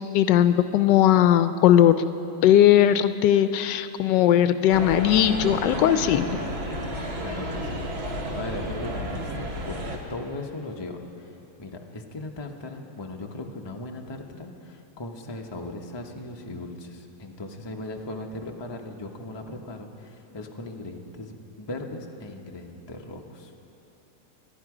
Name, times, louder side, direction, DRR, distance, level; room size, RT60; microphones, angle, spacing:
voice 1, 0.0-2.1 2.4-6.4, left 11 dB, 80° left, 12 dB, 1.2 m, -19 dB
sound 1, 4.7-10.0, equal, 40° right, 1.5 m, -32 dB
voice 2, 7.2-23.5, left 2 dB, 20° left, 2 dB, 0.7 m, -38 dB
25.0 x 11.5 x 4.9 m, 2.8 s
omnidirectional pair, 1.9 m